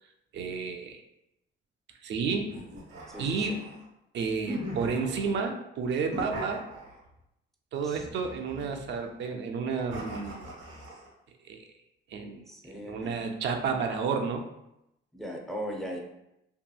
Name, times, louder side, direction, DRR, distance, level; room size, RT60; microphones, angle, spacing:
voice 1, 0.3-1.0 2.0-2.5 3.2-3.8 4.1-6.7 7.7-10.4 11.4-11.7 12.1-12.4 12.8-14.5, right 5 dB, 65° right, 4 dB, 0.4 m, -31 dB
sound 1, 2.5-3.9 4.4-5.4 6.0-7.2 7.9-9.0 9.9-11.1, right 1 dB, 85° right, 0.9 m, -40 dB
voice 2, 3.1-3.6 7.8-8.0 12.5-13.2 15.1-16.0, equal, ahead, 0 dB, 0.5 m, -38 dB
2.7 x 2.6 x 2.3 m, 0.85 s
cardioid pair, 90°, 20 cm